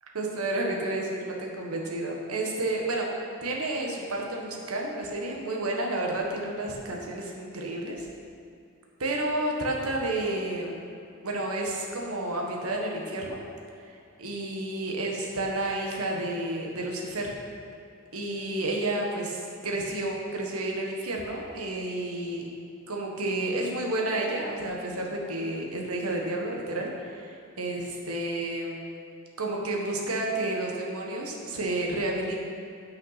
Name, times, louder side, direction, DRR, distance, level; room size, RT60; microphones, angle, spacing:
voice 1, 0.1-3.1 3.4-8.1 9.0-10.8 11.2-13.4 13.8-13.9 14.2-17.3 18.1-22.4 22.9-28.8 29.4-32.4, right 2 dB, 80° right, 0 dB, 1.4 m, -31 dB
9.0 x 5.7 x 5.8 m, 2.5 s
head